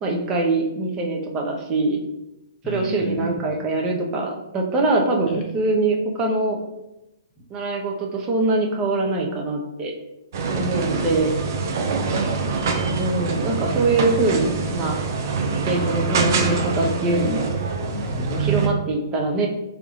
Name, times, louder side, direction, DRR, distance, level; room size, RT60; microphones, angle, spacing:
voice 1, 0.0-2.0 2.7-6.6 7.5-9.9 10.6-11.3 13.0-15.0 15.6-17.5 18.3-19.5, right 2 dB, 25° right, 1 dB, 0.8 m, -23 dB
voice 2, 2.6-3.5 5.3-5.4 12.1-12.7 17.9-18.9, right 4 dB, 25° left, 0 dB, 1.0 m, -28 dB
sound 1, 10.3-18.7, right 4 dB, 55° right, 0.6 m, -25 dB
3.7 x 3.4 x 3.1 m, 0.92 s
hypercardioid pair, 130°, 2 cm